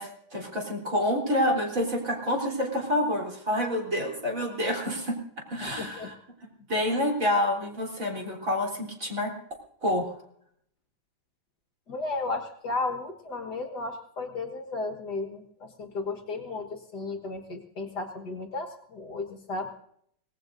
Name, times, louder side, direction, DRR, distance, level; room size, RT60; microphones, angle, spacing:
voice 1, 0.0-5.2 5.5-6.1 6.7-9.3 9.8-10.1, left 1 dB, 40° right, 0 dB, 4.0 m, -28 dB
voice 2, 5.6-6.1 11.9-19.7, left 3 dB, 55° left, 4 dB, 2.0 m, -34 dB
25.0 x 19.0 x 2.6 m, 0.68 s
omnidirectional pair, 2.2 m